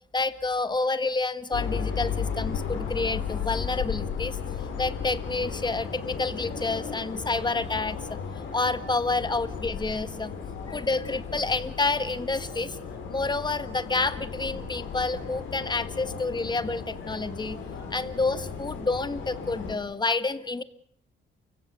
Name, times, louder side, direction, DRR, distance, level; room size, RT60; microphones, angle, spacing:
voice 1, 0.1-4.4 4.8-8.2 8.4-10.4 10.7-12.8 13.1-17.6 17.9-20.6, left 3 dB, 20° left, 13 dB, 1.6 m, -29 dB
sound 1, 1.5-19.8, left 6 dB, 80° left, 5.2 m, -35 dB
29.0 x 16.5 x 6.8 m, 0.69 s
cardioid pair, 90°, 20 cm